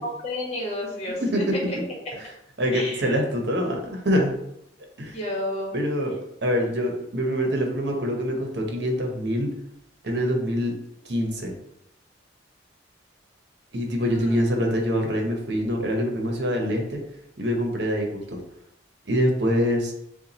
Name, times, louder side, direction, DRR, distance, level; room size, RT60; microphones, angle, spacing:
voice 1, 0.0-1.2 1.7-1.8 2.7-3.0 5.1-5.7 6.5-6.7 14.0-14.4, left 1 dB, 35° left, -2 dB, 1.4 m, -31 dB
voice 2, 1.2-1.6 2.2-2.3 2.6-4.3 5.0-5.2 5.7-6.2 6.4-9.5 10.0-10.7 11.0-11.5 13.7-17.0 17.4-18.4 19.1-19.9, equal, 60° right, 2 dB, 0.9 m, -25 dB
6.8 x 2.4 x 2.9 m, 0.78 s
head